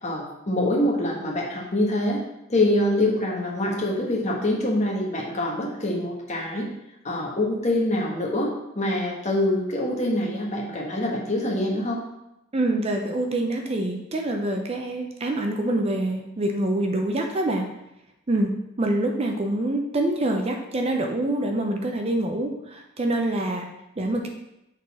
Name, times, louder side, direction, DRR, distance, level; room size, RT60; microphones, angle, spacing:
voice 1, 0.0-2.2 2.5-6.7 7.0-12.0, left 1 dB, 35° left, -1 dB, 1.2 m, -25 dB
voice 2, 12.5-17.7 18.3-18.5 18.8-23.7 24.0-24.3, right 1 dB, 30° right, 3 dB, 0.5 m, -25 dB
6.4 x 3.9 x 4.1 m, 0.89 s
head